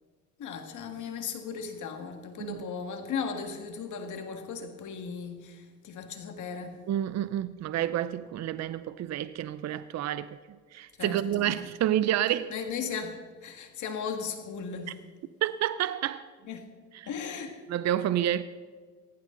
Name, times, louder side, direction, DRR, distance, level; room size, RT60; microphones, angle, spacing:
voice 1, 0.4-6.8 11.0-11.6 12.5-15.0 16.5-16.7 17.1-17.6, left 6 dB, 75° left, 1.9 m, -37 dB
voice 2, 6.9-10.4 10.7-12.5 15.4-16.3 16.9-17.1 17.7-18.4, right 11 dB, 60° right, 0.5 m, -29 dB
17.5 x 15.0 x 3.8 m
cardioid pair, 105°, 30 cm